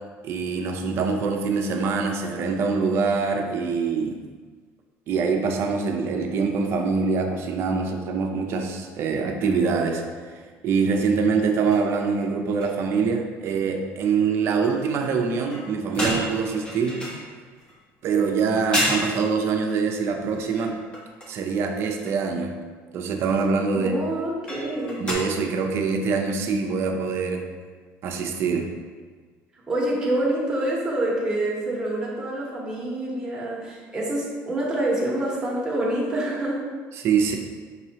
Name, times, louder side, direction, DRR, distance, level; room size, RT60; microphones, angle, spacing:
voice 1, 0.2-4.2 5.1-17.0 18.0-20.7 21.3-22.5 22.9-23.9 25.0-27.4 28.0-28.7 36.9-37.4, right 5 dB, 50° right, 3 dB, 0.5 m, -24 dB
sound 1, 11.7-11.9 12.2-12.3 12.6-13.0 15.5-17.8 18.4-18.5 18.7-19.1 20.2-21.4 21.9-22.1 24.5-25.1, equal, 20° left, 0.8 m, -30 dB
voice 2, 23.7-25.0 29.7-36.6, right 1 dB, 15° right, -5 dB, 1.0 m, -26 dB
5.4 x 3.0 x 2.8 m, 1.5 s
cardioid pair, 160°, 6 cm